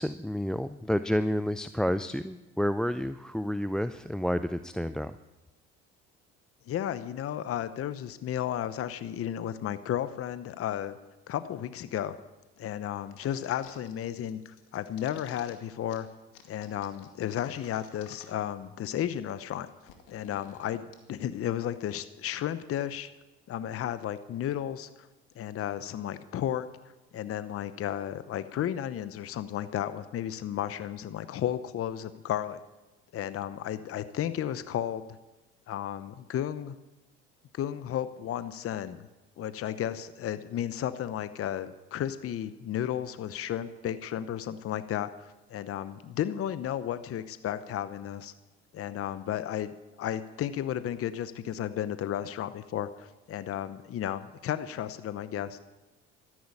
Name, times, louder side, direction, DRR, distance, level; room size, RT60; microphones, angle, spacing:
voice 1, 0.0-5.1, equal, ahead, 12 dB, 0.4 m, -30 dB
voice 2, 6.7-11.0 11.3-12.2 12.6-16.1 16.5-19.7 20.1-23.1 23.5-25.1 25.4-26.7 27.1-32.6 33.1-35.2 35.7-36.8 37.5-39.0 39.4-48.3 48.7-55.7, left 10 dB, 45° left, 13 dB, 0.9 m, -33 dB
sound 1, 13.1-13.9 14.2-15.5 15.9-16.0 16.3-18.5 18.8-18.9 19.1-20.9, left 9 dB, 80° left, 2.2 m, -53 dB
13.5 x 11.0 x 8.5 m, 1.1 s
hypercardioid pair, 70°, 31 cm